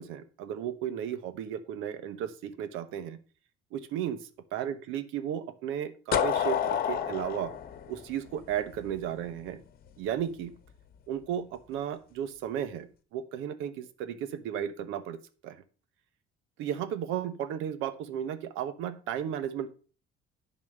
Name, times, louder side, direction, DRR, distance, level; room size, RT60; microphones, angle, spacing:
voice 1, 0.0-3.2 3.7-7.5 7.9-9.6 10.0-10.6 11.1-15.2 15.4-15.6 16.6-19.7, right 9 dB, 85° right, 12 dB, 1.1 m, -34 dB
sound 1, 6.1-9.0, left 9 dB, 50° left, 1.1 m, -29 dB
11.0 x 4.3 x 6.6 m, 0.37 s
cardioid pair, 130°, 20 cm